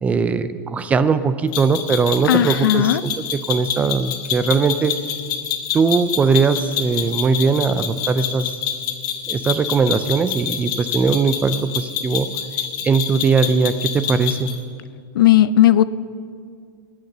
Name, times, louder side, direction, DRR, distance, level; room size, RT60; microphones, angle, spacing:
voice 1, 0.0-4.9 5.7-8.5 9.3-12.3 12.8-14.5, right 5 dB, 10° right, 13 dB, 0.3 m, -20 dB
sound 1, 1.5-14.6, left 9 dB, 35° left, 1.2 m, -27 dB
voice 2, 2.3-3.0 15.2-15.8, left 12 dB, 85° left, 16 dB, 0.5 m, -15 dB
19.5 x 6.6 x 6.7 m, 2.2 s
supercardioid pair, 160°, 11 cm